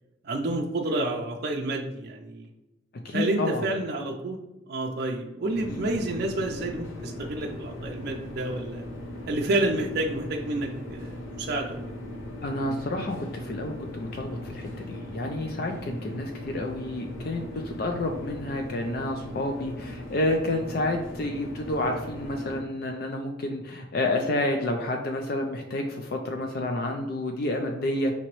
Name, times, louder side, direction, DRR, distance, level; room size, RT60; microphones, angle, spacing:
voice 1, 0.2-2.5 3.1-4.4 4.7-8.8 9.3-11.8, right 2 dB, 50° right, 0 dB, 0.4 m, -29 dB
voice 2, 3.0-3.7 5.7-5.8 12.4-28.1, left 1 dB, 50° left, 3 dB, 0.4 m, -29 dB
sound 1, 5.5-22.6, left 1 dB, 85° left, 0.8 m, -39 dB
5.1 x 2.9 x 3.0 m, 0.97 s
head